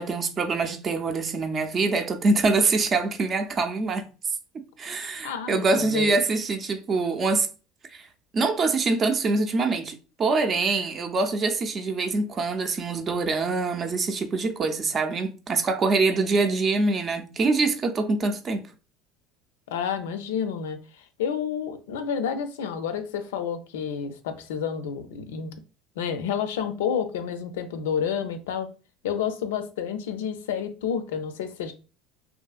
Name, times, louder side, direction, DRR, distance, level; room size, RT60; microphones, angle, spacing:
voice 1, 0.0-4.0 4.5-7.5 7.9-8.1 8.3-18.7, right 3 dB, 35° right, 0.5 m, -24 dB
voice 2, 5.2-6.2 19.7-20.8 21.2-25.5 26.0-28.7 29.0-31.7, left 7 dB, 90° left, 0.4 m, -29 dB
2.7 x 2.6 x 2.3 m
supercardioid pair, 95°, 0 cm